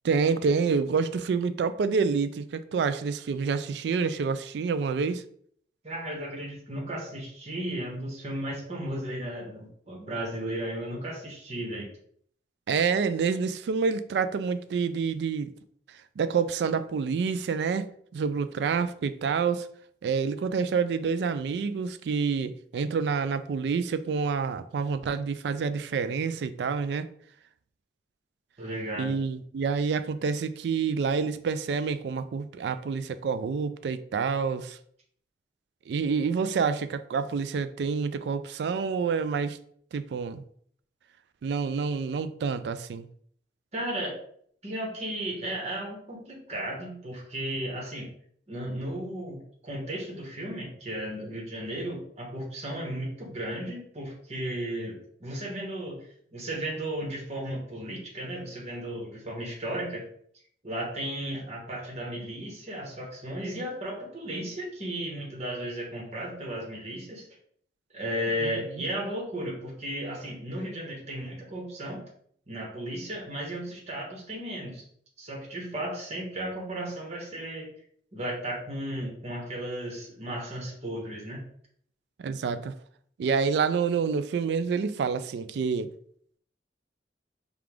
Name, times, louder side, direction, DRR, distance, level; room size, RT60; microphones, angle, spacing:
voice 1, 0.0-5.2 12.7-15.5 16.2-19.7 20.0-27.1 29.0-34.8 35.9-39.6 39.9-40.4 41.4-43.1 68.4-68.6 82.2-82.7 83.2-85.9, right 5 dB, 70° right, 0.3 m, -28 dB
voice 2, 5.8-11.9 28.6-29.2 43.7-44.2 44.6-48.1 48.5-60.1 60.6-67.3 67.9-72.0 72.5-74.8 75.2-77.7 78.1-81.4, right 1 dB, 40° right, 1.1 m, -35 dB
4.9 x 2.4 x 3.5 m
head